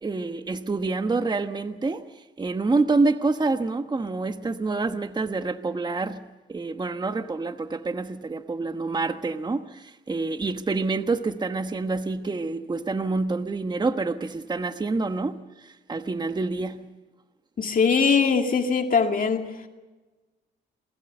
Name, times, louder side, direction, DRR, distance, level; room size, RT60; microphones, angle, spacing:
voice 1, 0.0-6.2 6.5-16.8, right 3 dB, 20° right, 1.2 m, -27 dB
voice 2, 17.6-19.5, left 5 dB, 45° left, 2.2 m, -21 dB
27.5 x 21.0 x 6.8 m
cardioid pair, 90°, 20 cm